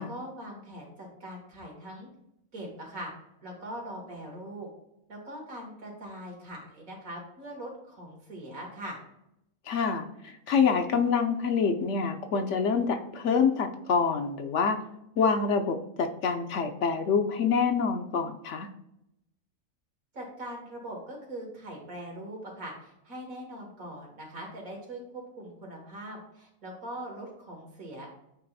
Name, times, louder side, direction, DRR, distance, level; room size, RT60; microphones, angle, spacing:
voice 1, 0.0-2.1 2.5-3.1 3.4-4.7 5.1-9.0 20.1-28.1, right 1 dB, 80° right, -1 dB, 2.5 m, -41 dB
voice 2, 9.7-14.8 15.2-18.7, left 5 dB, 65° left, 6 dB, 1.0 m, -26 dB
8.6 x 3.0 x 4.1 m, 0.81 s
omnidirectional pair, 1.4 m